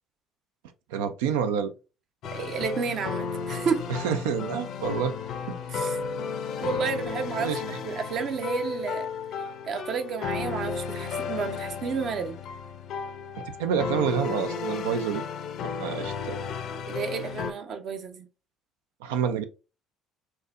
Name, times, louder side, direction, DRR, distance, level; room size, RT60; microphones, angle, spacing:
voice 1, 0.9-1.7 3.9-5.1 5.5-5.6 7.4-7.8 13.6-15.2 15.8-16.4 19.0-19.4, right 7 dB, 75° right, 0.3 m, -28 dB
sound 1, 2.2-17.5, left 5 dB, 60° left, 0.5 m, -33 dB
voice 2, 2.3-3.8 5.7-6.0 6.6-9.1 9.6-12.4 16.9-18.3, right 6 dB, 55° right, 0.7 m, -31 dB
4.0 x 2.7 x 2.4 m
figure-of-eight pair, 55°, 0 cm